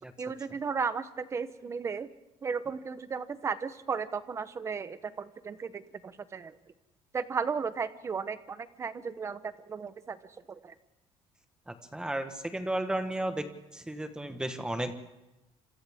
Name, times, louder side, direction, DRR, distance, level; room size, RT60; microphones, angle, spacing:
voice 1, 0.2-2.1 2.4-6.6 7.1-10.2 10.5-10.7, right 5 dB, 25° right, 13 dB, 0.9 m, -35 dB
voice 2, 11.7-13.5 13.7-14.9, right 1 dB, 5° right, 7 dB, 1.3 m, -33 dB
29.5 x 26.5 x 3.6 m, 1.0 s
cardioid pair, 165°, 12 cm